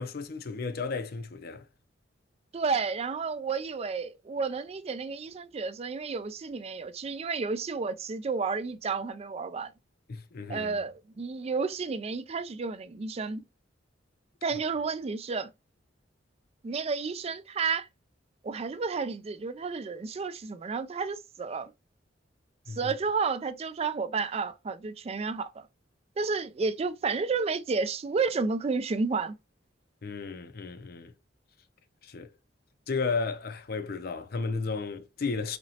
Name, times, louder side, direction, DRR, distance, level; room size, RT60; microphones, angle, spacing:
voice 1, 0.0-1.6 10.1-10.8 22.7-22.9 30.0-31.1 32.0-32.3 32.9-35.6, left 4 dB, 55° left, 0.5 m, -33 dB
voice 2, 2.5-9.7 10.5-13.4 14.4-15.5 16.6-17.9 18.4-21.7 22.8-25.7 26.2-29.4, right 4 dB, 35° right, 0.4 m, -31 dB
4.2 x 2.9 x 2.7 m
head